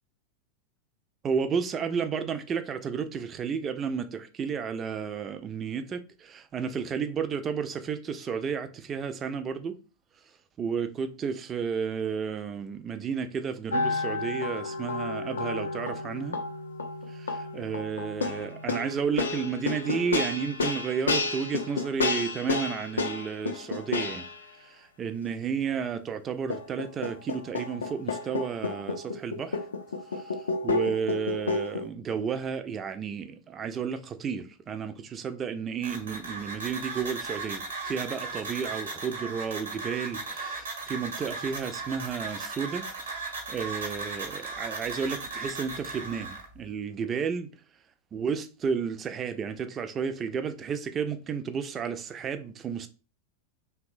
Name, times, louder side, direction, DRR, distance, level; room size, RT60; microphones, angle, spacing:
voice 1, 1.2-9.8 10.6-16.4 17.1-24.3 24.6-29.6 30.1-43.2 43.5-47.5 48.1-52.9, right 6 dB, 25° right, 0.3 m, -32 dB
sound 1, 13.7-24.4 26.5-31.9, left 3 dB, 70° left, 0.3 m, -31 dB
sound 2, 35.8-46.4, right 3 dB, 70° right, 0.8 m, -37 dB
2.9 x 2.1 x 2.5 m
figure-of-eight pair, 90°, 0 cm